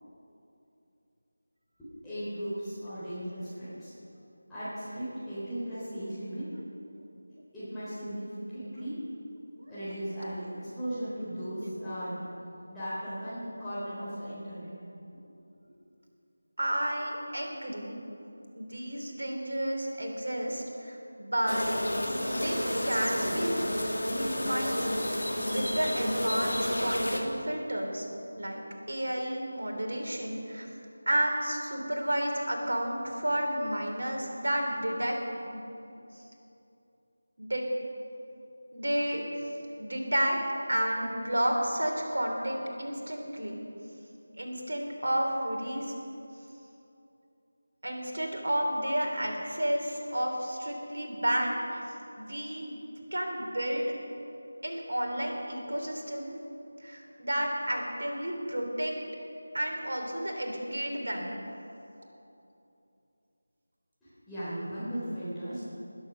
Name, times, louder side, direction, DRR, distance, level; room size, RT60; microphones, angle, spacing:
voice 1, 1.8-3.9 4.5-6.4 7.5-8.9 9.7-12.2 12.7-14.7 64.0-65.6, equal, 5° left, -17 dB, 3.8 m, -37 dB
voice 2, 16.6-18.0 18.5-21.7 22.3-22.6 22.8-23.7 24.0-24.9 25.5-28.1 28.3-30.7 31.1-35.2 35.4-35.6 37.4-37.7 38.7-39.3 39.8-40.4 40.7-43.7 44.4-45.9 47.8-51.8 52.2-52.8 53.1-53.9 54.6-56.4 56.8-58.9 59.5-61.4, right 1 dB, 65° right, 1 dB, 3.0 m, -31 dB
sound 1, 21.5-27.2, equal, 70° left, 2.4 m, -30 dB
20.0 x 7.5 x 6.3 m, 2.8 s
figure-of-eight pair, 165°, 0 cm